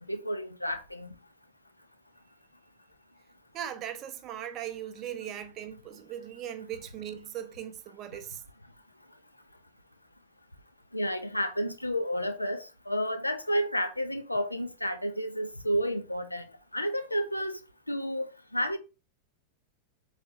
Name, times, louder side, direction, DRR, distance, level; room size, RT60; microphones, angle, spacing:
voice 1, 0.1-1.1 10.9-16.4 16.7-17.5 17.9-18.8, equal, 85° left, 0.4 m, -31 dB
voice 2, 3.5-8.4, right 10 dB, 35° right, 0.6 m, -39 dB
4.3 x 3.1 x 2.6 m
figure-of-eight pair, 90°, 0 cm